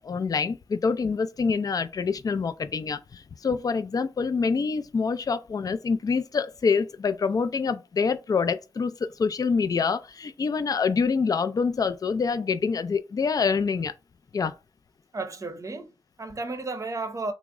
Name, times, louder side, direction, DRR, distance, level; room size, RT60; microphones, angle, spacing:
voice 1, 0.0-13.9 14.3-14.6, left 5 dB, 45° left, 0.3 m, -26 dB
voice 2, 15.1-17.3, right 3 dB, 40° right, 0.6 m, -33 dB
3.4 x 2.0 x 3.5 m
wide cardioid pair, 85°, 9 cm